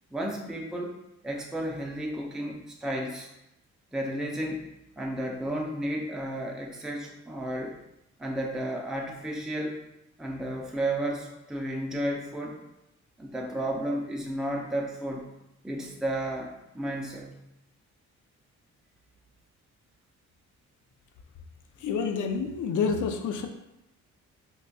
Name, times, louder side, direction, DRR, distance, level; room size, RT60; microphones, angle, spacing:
voice 1, 0.1-1.0 1.2-3.3 3.9-4.6 5.0-7.8 8.2-9.8 10.2-12.6 13.2-15.3 15.6-17.4, right 1 dB, ahead, 0 dB, 0.5 m, -32 dB
voice 2, 21.8-23.5, left 5 dB, 70° left, 6 dB, 0.5 m, -28 dB
3.8 x 2.4 x 2.3 m, 0.88 s
cardioid pair, 65°, 32 cm